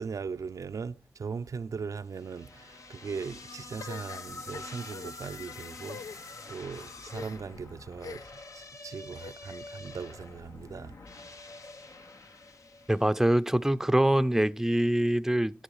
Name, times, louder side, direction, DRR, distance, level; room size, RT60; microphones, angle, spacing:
voice 1, 0.0-6.2 6.5-8.3 8.5-11.0, right 5 dB, 75° right, 0.5 m, -39 dB
sound 1, 2.1-13.4, left 3 dB, 70° left, 1.0 m, -46 dB
sound 2, 3.8-5.1 5.8-6.2 7.1-7.6 8.0-8.5 9.1-9.7, left 6 dB, 90° left, 0.4 m, -44 dB
voice 2, 12.9-15.6, right 1 dB, 5° right, 0.5 m, -24 dB
10.0 x 10.0 x 4.8 m
cardioid pair, 50°, 6 cm